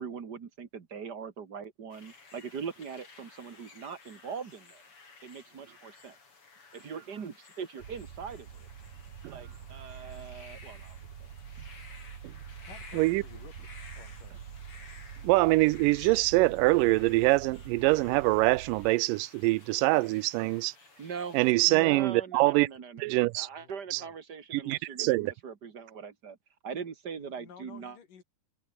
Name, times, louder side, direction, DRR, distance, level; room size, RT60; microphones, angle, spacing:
voice 1, 0.0-4.8 5.2-6.2 6.7-8.7 9.3-11.3 21.0-26.4 26.6-28.0, right 6 dB, 40° right, 1.6 m, -41 dB
sound 1, 1.9-21.5, left 4 dB, 40° left, 4.7 m, -54 dB
sound 2, 7.8-18.9, right 8 dB, 55° right, 3.2 m, -46 dB
voice 2, 12.7-13.7 14.0-14.4 21.5-21.7 23.6-24.1 27.2-28.2, left 7 dB, 65° left, 4.9 m, -53 dB
voice 3, 15.2-20.7 21.3-22.7 23.0-23.5 23.9-24.0 24.5-25.3, right 21 dB, 80° right, 2.1 m, -24 dB
omnidirectional pair, 4.1 m